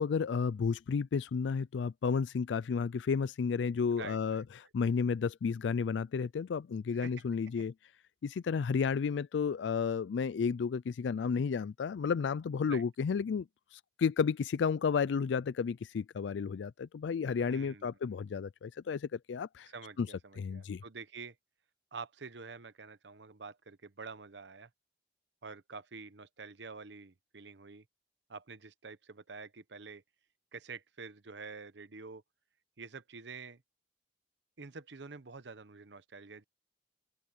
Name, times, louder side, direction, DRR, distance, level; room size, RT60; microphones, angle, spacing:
voice 1, 0.0-7.7 8.2-13.5 13.7-19.7 20.0-20.1 20.4-20.8, left 6 dB, 85° left, 0.4 m, -32 dB
voice 2, 4.0-4.4 6.9-7.1 12.6-12.8 17.4-18.0 19.7-21.4 21.9-24.7 25.4-27.8 28.3-30.0 30.5-32.2 32.8-33.6 34.6-36.4, right 4 dB, 75° right, 1.0 m, -47 dB
open air
head